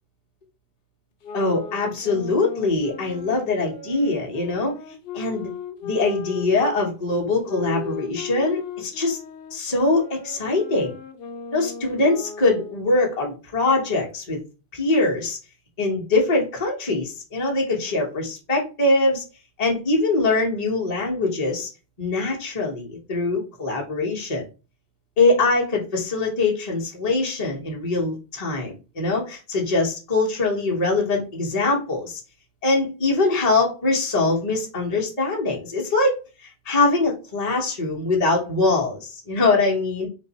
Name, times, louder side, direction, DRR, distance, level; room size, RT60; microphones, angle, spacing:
sound 1, 1.2-6.8 7.4-12.9, left 5 dB, 70° left, 0.8 m, -37 dB
voice 1, 1.3-4.7 5.1-5.5 5.8-9.2 9.5-10.9 11.5-14.4 14.7-15.4 15.8-19.2 19.6-21.7 22.0-24.4 25.2-32.2 32.6-40.1, left 3 dB, 40° left, -2 dB, 1.1 m, -23 dB
3.7 x 2.6 x 4.0 m, 0.31 s
omnidirectional pair, 1.1 m